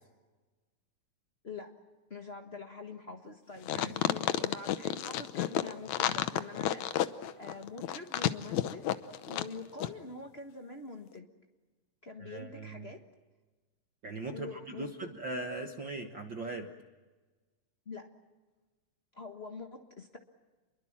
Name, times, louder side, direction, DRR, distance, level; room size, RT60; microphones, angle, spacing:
voice 1, 2.1-6.9 7.4-8.8 9.3-11.3 12.0-13.0 14.3-15.1 17.8-18.1 19.1-20.2, left 4 dB, 45° left, 4 dB, 0.7 m, -45 dB
sound 1, 3.6-9.5 9.8-9.9, left 12 dB, 70° left, 2.0 m, -31 dB
voice 2, 3.7-4.1 12.2-12.9 14.0-16.7, right 3 dB, 50° right, 4 dB, 1.5 m, -40 dB
28.5 x 23.0 x 7.4 m, 1.3 s
omnidirectional pair, 3.9 m